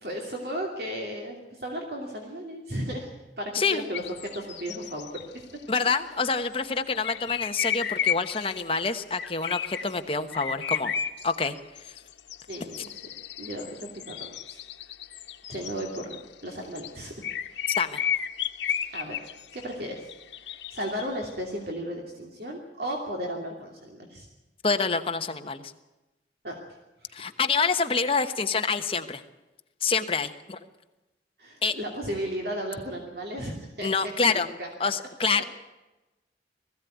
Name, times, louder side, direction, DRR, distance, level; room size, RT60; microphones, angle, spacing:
voice 1, 0.0-3.1 3.4-5.6 12.5-13.0 13.4-14.6 15.5-17.1 17.5-17.7 18.9-19.3 19.5-20.0 20.5-24.3 26.4-26.6 27.0-27.1 31.4-33.9 34.3-34.7, equal, 55° right, 1 dB, 2.8 m, -35 dB
sound 1, 3.9-5.3 5.6-5.9 6.9-8.6 9.2-9.9 10.3-16.9 17.2-21.2, left 8 dB, 85° left, 1.2 m, -33 dB
voice 2, 5.7-10.9 11.2-11.5 11.8-11.9 17.7-18.0 24.6-25.7 27.1-29.2 29.8-30.6 31.6-31.7 33.8-34.5 34.8-35.4, left 4 dB, 30° left, 7 dB, 1.1 m, -27 dB
20.0 x 15.5 x 9.4 m, 1.0 s
head